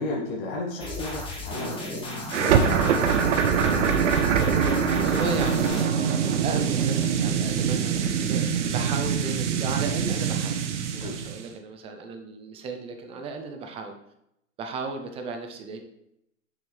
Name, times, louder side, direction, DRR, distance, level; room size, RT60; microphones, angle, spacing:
voice 1, 0.0-2.5 11.0-11.1, left 2 dB, 45° left, -4 dB, 2.1 m, -33 dB
sound 1, 0.8-5.8, left 1 dB, 15° left, 1.7 m, -34 dB
sound 2, 2.3-11.4, right 7 dB, 65° right, 1.0 m, -24 dB
voice 2, 5.0-6.0 6.4-10.6 10.9-13.9 14.6-15.8, right 4 dB, 15° right, 5 dB, 0.5 m, -35 dB
6.9 x 6.0 x 3.3 m, 0.79 s
hypercardioid pair, 140°, 39 cm